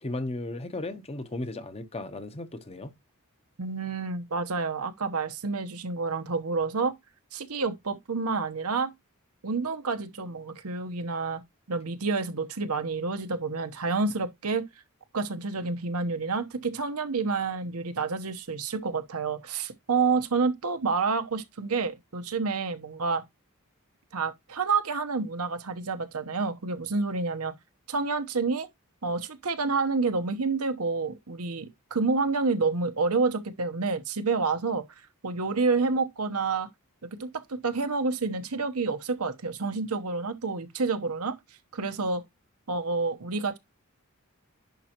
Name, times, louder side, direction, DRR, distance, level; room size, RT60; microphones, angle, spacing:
voice 1, 0.0-2.9, left 2 dB, 30° left, 0.8 m, -35 dB
voice 2, 3.6-6.9 7.3-8.9 9.4-11.4 11.7-14.7 15.1-23.2 24.1-27.5 27.9-28.7 29.0-31.7 31.9-34.8 35.2-36.7 37.1-41.4 41.7-42.2 42.7-43.6, right 4 dB, 80° right, 1.0 m, -29 dB
10.5 x 5.6 x 3.0 m
head